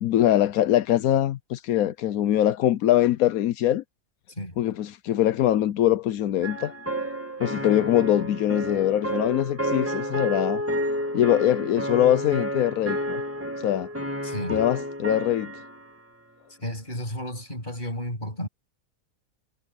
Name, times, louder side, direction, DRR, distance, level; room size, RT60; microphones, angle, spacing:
voice 1, 0.0-3.8 4.6-6.7 7.4-10.6 11.1-13.2 13.6-13.9 14.5-15.5, left 12 dB, 85° left, 1.2 m, -23 dB
sound 1, 6.4-15.9, equal, 10° right, 1.9 m, -30 dB
voice 2, 14.2-14.6 16.6-18.5, left 1 dB, 35° left, 8.3 m, -33 dB
omnidirectional pair, 1.5 m